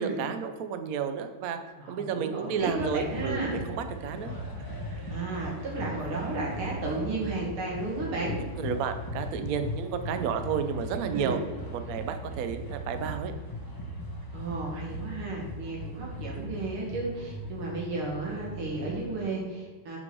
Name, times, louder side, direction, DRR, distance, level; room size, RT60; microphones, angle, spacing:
voice 1, 0.0-1.6 1.9-4.3 4.9-5.0 8.6-11.4 11.7-13.3, right 7 dB, 65° right, 8 dB, 0.9 m, -32 dB
voice 2, 1.8-3.6 5.1-8.4 11.1-11.4 14.3-20.0, right 3 dB, 90° right, -2 dB, 3.1 m, -33 dB
sound 1, 2.6-19.2, equal, 15° left, 1.0 m, -38 dB
11.0 x 5.4 x 4.7 m, 1.4 s
omnidirectional pair, 2.3 m